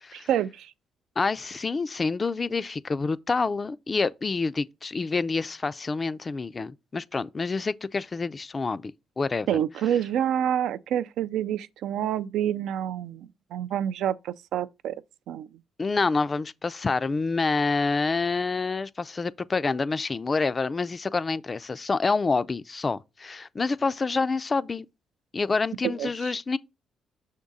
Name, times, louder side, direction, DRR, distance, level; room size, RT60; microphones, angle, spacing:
voice 1, 0.1-0.7 9.5-15.0 15.3-15.5 26.0-26.1, right 10 dB, 80° right, 0.3 m, -27 dB
voice 2, 1.2-9.6 15.8-24.9 25.3-26.6, left 4 dB, 30° left, 0.3 m, -27 dB
6.4 x 3.6 x 4.0 m
cardioid pair, 90°, 0 cm